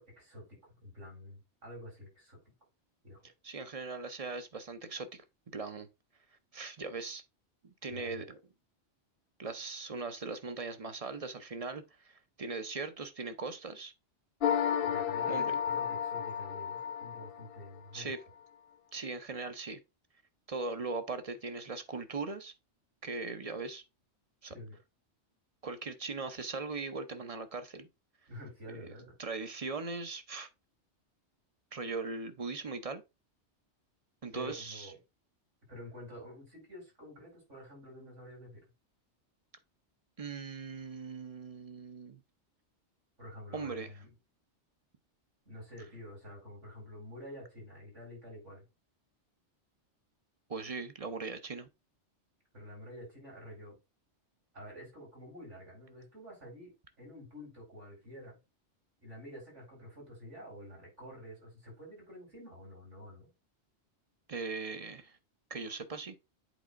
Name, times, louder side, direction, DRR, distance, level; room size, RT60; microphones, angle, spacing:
voice 1, 0.0-2.4 3.0-3.2 7.9-8.3 14.8-18.1 24.5-24.8 28.3-29.1 34.3-35.0 35.7-38.6 43.2-44.1 45.5-48.6 52.5-53.8 54.5-58.4 59.0-63.3, equal, 80° right, 5.3 m, -49 dB
voice 2, 3.4-5.2 5.5-5.9 6.5-7.2 7.6-8.4 9.4-13.9 15.3-15.5 17.9-18.2 18.9-19.8 20.5-22.5 23.0-23.8 24.4-24.5 25.6-27.9 28.7-28.9 29.2-30.5 31.7-33.0 34.2-34.9 40.2-42.2 43.5-43.9 50.5-51.7 64.3-65.2 65.5-66.1, right 4 dB, 35° right, 0.7 m, -39 dB
sound 1, 14.4-17.8, left 8 dB, 60° left, 0.7 m, -32 dB
8.1 x 4.2 x 3.6 m
omnidirectional pair, 1.2 m